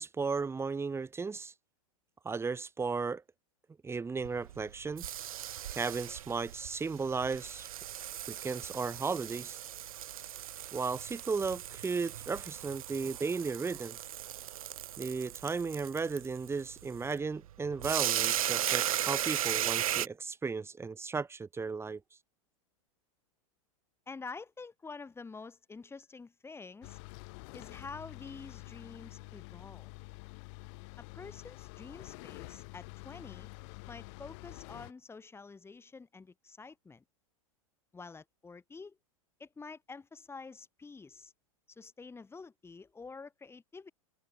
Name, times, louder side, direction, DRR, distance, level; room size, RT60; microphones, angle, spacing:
voice 1, 0.0-1.5 2.2-3.2 3.8-5.1 5.7-7.7 8.3-9.6 10.7-14.0 15.0-22.0, right 4 dB, 15° right, 2.5 m, -35 dB
sound 1, 4.2-20.1, right 11 dB, 75° right, 0.9 m, -37 dB
voice 2, 24.1-27.0 27.5-29.9 31.0-33.5 33.9-37.0 37.9-39.0 39.4-41.3 41.7-43.9, left 4 dB, 15° left, 7.1 m, -48 dB
sound 2, 26.8-34.9, left 31 dB, 55° left, 7.1 m, -48 dB
hypercardioid pair, 105°, 18 cm